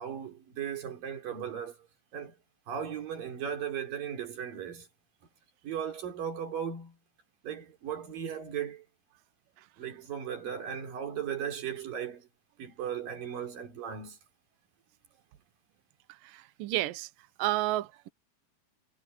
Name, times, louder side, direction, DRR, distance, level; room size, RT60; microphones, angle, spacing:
voice 1, 0.0-1.8 2.1-2.3 2.7-4.9 5.6-7.0 7.4-8.9 9.8-12.3 12.6-14.2, right 8 dB, 50° right, 5.4 m, -37 dB
voice 2, 16.6-17.1 17.4-18.1, right 17 dB, 90° right, 1.9 m, -30 dB
omnidirectional pair, 5.4 m